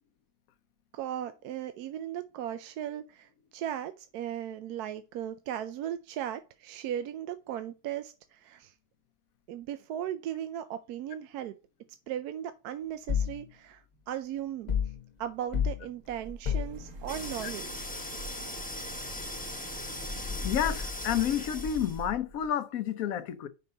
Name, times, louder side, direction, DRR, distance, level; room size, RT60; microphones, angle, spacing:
voice 1, 0.9-8.7 9.5-11.5 12.1-14.7 15.2-17.9, right 10 dB, 80° right, 1.1 m, -37 dB
sound 1, 13.1-13.4 14.7-15.0 15.5-15.8 16.4-16.8, left 8 dB, 45° left, 0.6 m, -28 dB
sound 2, 15.2-22.5, right 1 dB, 55° right, 1.7 m, -47 dB
sound 3, 17.1-22.1, left 2 dB, 5° left, 1.0 m, -38 dB
voice 2, 20.4-23.5, left 10 dB, 65° left, 1.1 m, -30 dB
5.5 x 5.3 x 5.4 m
omnidirectional pair, 1.7 m